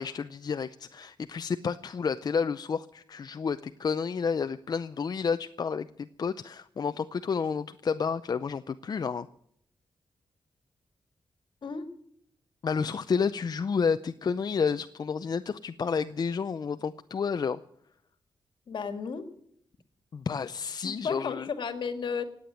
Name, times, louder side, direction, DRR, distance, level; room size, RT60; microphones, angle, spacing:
voice 1, 0.0-9.3 12.6-17.6 20.1-21.5, left 6 dB, 55° left, 10 dB, 0.5 m, -30 dB
voice 2, 18.7-19.2 20.8-22.2, left 5 dB, 75° left, 8 dB, 1.8 m, -33 dB
18.5 x 8.6 x 9.1 m, 0.71 s
cardioid pair, 85°, 8 cm